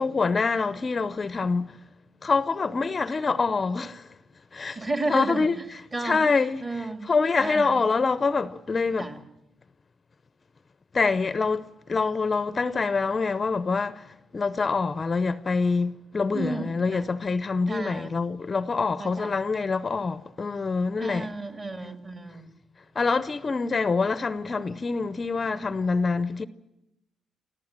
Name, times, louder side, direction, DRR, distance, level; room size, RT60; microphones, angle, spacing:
voice 1, 0.0-1.8 2.2-4.1 4.5-4.8 5.1-9.1 10.9-21.3 23.0-26.4, left 4 dB, 30° left, 0.6 m, -26 dB
voice 2, 4.8-5.5 5.9-6.2 6.6-7.1 7.4-7.8 9.0-9.2 16.3-17.1 17.7-18.1 19.0-19.4 21.0-22.5, right 2 dB, 30° right, 2.6 m, -32 dB
25.0 x 14.5 x 7.5 m
cardioid pair, 90°, 0 cm